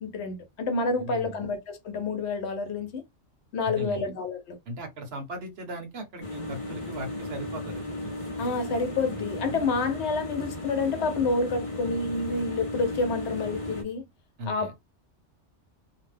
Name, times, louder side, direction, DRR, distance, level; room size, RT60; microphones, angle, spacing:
voice 1, 0.0-3.0 3.5-4.6 8.4-14.0 14.5-14.8, left 3 dB, 65° left, 1.0 m, -29 dB
voice 2, 0.9-1.4 3.6-4.1 4.7-7.8 14.4-14.7, right 1 dB, 60° right, 1.0 m, -38 dB
sound 1, 6.2-13.8, left 1 dB, 35° left, 0.6 m, -35 dB
2.7 x 2.1 x 3.2 m
omnidirectional pair, 1.2 m